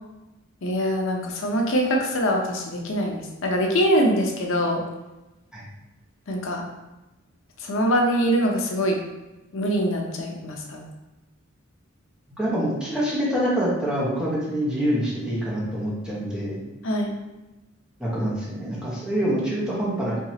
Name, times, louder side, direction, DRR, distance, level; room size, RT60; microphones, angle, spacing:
voice 1, 0.6-4.8 6.3-6.6 7.6-9.0 9.5-10.9 16.8-17.2, equal, 70° left, 1 dB, 0.7 m, -23 dB
voice 2, 12.4-16.6 18.0-20.2, equal, 5° right, -7 dB, 1.1 m, -26 dB
4.6 x 2.8 x 2.8 m, 1.0 s
head